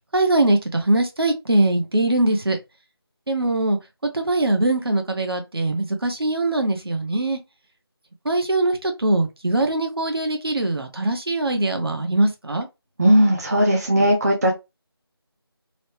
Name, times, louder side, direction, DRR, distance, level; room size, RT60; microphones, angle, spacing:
voice 1, 0.1-2.6 3.3-3.8 4.1-7.4 8.2-12.7, right 2 dB, 70° right, 0.9 m, -22 dB
voice 2, 13.0-14.5, equal, 40° right, 0.6 m, -17 dB
3.0 x 2.1 x 3.1 m
figure-of-eight pair, 165°, 13 cm